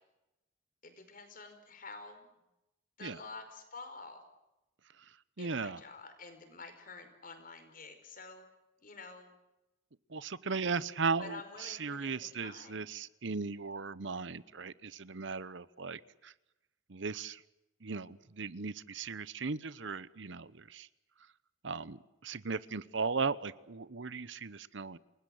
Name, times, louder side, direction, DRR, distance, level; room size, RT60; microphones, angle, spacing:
voice 1, 0.8-2.3 3.0-4.2 5.4-8.4 8.8-9.3 11.2-12.9, left 3 dB, 45° left, 8 dB, 4.8 m, -49 dB
voice 2, 5.0-5.8 10.1-16.3 16.9-17.4 17.8-20.9 21.6-25.0, right 4 dB, 65° right, 18 dB, 0.8 m, -37 dB
29.0 x 20.0 x 7.8 m, 0.96 s
head